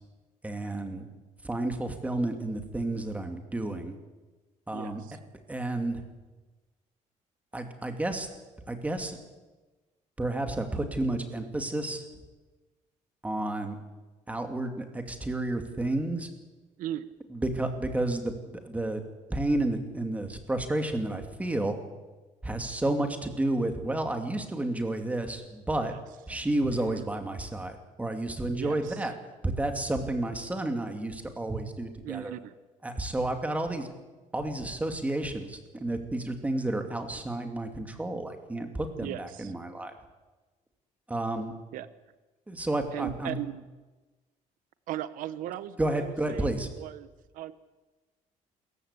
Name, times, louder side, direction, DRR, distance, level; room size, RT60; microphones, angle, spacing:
voice 1, 0.4-1.1 1.4-3.9 4.7-5.0 5.5-6.0 7.5-8.3 8.7-9.2 10.2-12.0 13.2-13.8 14.3-16.3 17.3-19.0 19.3-21.7 22.4-25.9 26.3-29.1 29.4-32.3 32.8-33.9 34.3-39.9 41.1-41.6 42.5-43.4 45.8-46.7, right 2 dB, 10° right, 5 dB, 2.6 m, -31 dB
voice 2, 4.7-5.2 16.8-17.1 25.8-26.0 26.7-27.1 28.5-29.1 32.0-32.5 39.0-39.5 41.7-41.9 42.9-43.6 44.9-47.1 47.3-47.5, right 12 dB, 90° right, 14 dB, 1.0 m, -38 dB
27.0 x 14.5 x 8.4 m, 1.2 s
cardioid pair, 145°, 14 cm